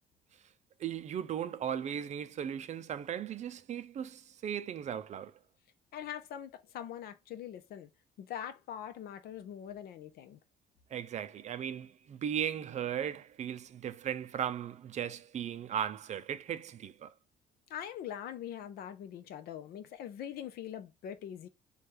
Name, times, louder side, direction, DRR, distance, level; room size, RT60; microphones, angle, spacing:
voice 1, 0.8-5.4 10.9-17.1, right 9 dB, 45° right, 0.4 m, -37 dB
voice 2, 5.9-7.9 8.2-10.4 17.7-21.5, left 10 dB, 65° left, 0.6 m, -43 dB
3.3 x 2.3 x 4.3 m
cardioid pair, 110°, 17 cm